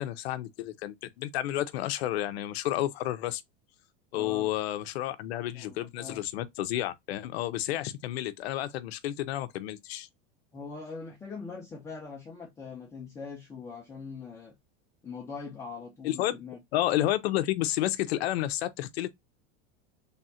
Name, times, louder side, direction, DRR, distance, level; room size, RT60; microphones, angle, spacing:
voice 1, 0.0-3.4 4.1-10.1 16.0-16.3 16.7-19.1, left 14 dB, 80° left, 0.7 m, -31 dB
voice 2, 4.1-4.5 5.5-6.2 10.5-14.5 15.0-16.6, left 5 dB, 10° left, 0.6 m, -42 dB
3.5 x 2.4 x 4.1 m
supercardioid pair, 165°, 31 cm